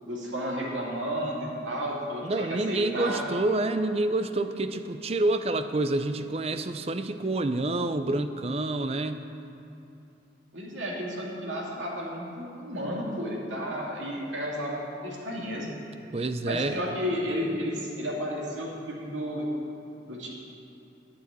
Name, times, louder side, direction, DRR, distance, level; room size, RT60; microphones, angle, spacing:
voice 1, 0.0-3.3 10.5-15.7 16.4-19.4 20.1-20.3, equal, 90° right, -3 dB, 2.5 m, -32 dB
voice 2, 2.2-9.2 16.1-16.8, right 2 dB, 35° right, 9 dB, 0.5 m, -28 dB
11.5 x 6.3 x 8.9 m, 2.7 s
head